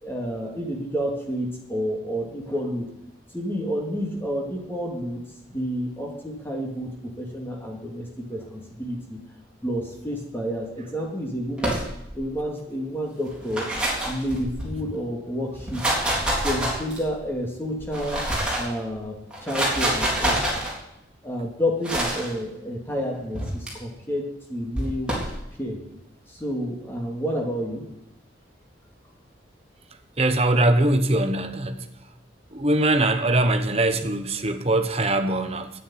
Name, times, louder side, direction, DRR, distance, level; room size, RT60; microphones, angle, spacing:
voice 1, 0.0-2.9 3.3-9.2 9.6-11.8 12.1-13.7 14.0-15.8 16.4-18.3 18.6-20.4 21.2-25.2 25.6-25.8 26.3-27.9, equal, 10° left, -1 dB, 2.6 m, -30 dB
sound 1, 11.6-12.2 13.3-14.8 15.5-17.2 17.8-18.7 19.3-20.7 21.8-22.3 23.3-23.7 24.7-25.3, right 1 dB, 5° right, 3.7 m, -26 dB
voice 2, 30.2-31.9 32.5-35.7, right 2 dB, 35° right, 7 dB, 1.1 m, -22 dB
9.9 x 9.0 x 9.9 m, 0.82 s
head